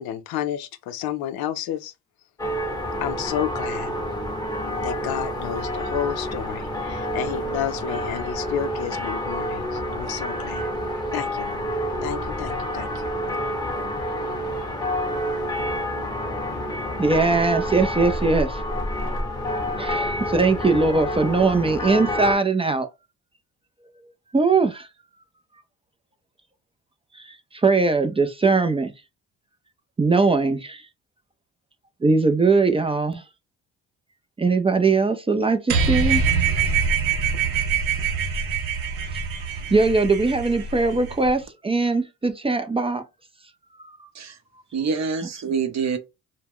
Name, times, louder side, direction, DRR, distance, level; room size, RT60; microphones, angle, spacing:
voice 1, 0.0-1.9 3.0-3.9 4.8-10.7 11.1-12.9, left 10 dB, 70° left, 0.5 m, -31 dB
sound 1, 2.4-22.4, equal, 10° left, 0.8 m, -28 dB
voice 2, 17.0-18.6 19.8-22.9 24.3-24.9 27.1-28.9 30.0-30.9 32.0-33.2 34.4-36.2 39.7-43.0 43.8-44.1, right 3 dB, 15° right, 0.4 m, -21 dB
sound 2, 35.7-41.3, right 6 dB, 90° right, 0.6 m, -24 dB
voice 3, 44.7-46.0, right 5 dB, 45° right, 0.7 m, -26 dB
2.2 x 2.1 x 3.4 m
supercardioid pair, 60°, 38 cm